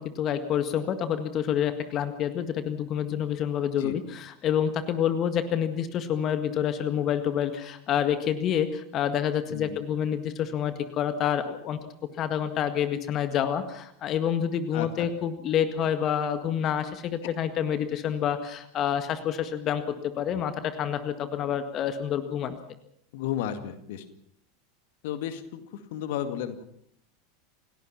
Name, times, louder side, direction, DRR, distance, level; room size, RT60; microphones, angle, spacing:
voice 1, 0.0-11.8 12.2-22.6, left 9 dB, 40° left, 9 dB, 1.8 m, -28 dB
voice 2, 14.7-15.1 23.1-24.1 25.0-26.6, left 10 dB, 60° left, 9 dB, 2.1 m, -33 dB
29.0 x 17.5 x 6.0 m, 0.69 s
figure-of-eight pair, 85°, 0 cm